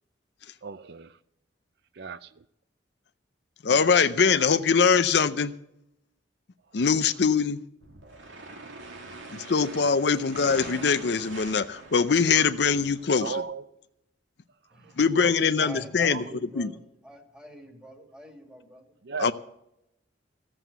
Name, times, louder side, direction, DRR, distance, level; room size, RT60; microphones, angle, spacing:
voice 1, 0.6-1.2 1.9-2.4 3.7-3.9 6.7-6.8 8.8-9.0 9.7-10.0 12.3-12.8 13.2-13.7 14.7-14.9 15.2-15.5 16.1-16.4 19.0-19.3, right 5 dB, 55° right, 0.4 m, -38 dB
voice 2, 3.6-5.5 6.7-7.6 9.3-13.3 15.0-16.2 16.6-16.7 19.2-19.3, left 5 dB, 60° left, 0.5 m, -22 dB
sound 1, 7.8-13.4, right 2 dB, 85° right, 2.5 m, -44 dB
voice 3, 14.7-15.3 15.6-18.9, equal, 5° right, 2.1 m, -45 dB
15.0 x 7.6 x 8.0 m
head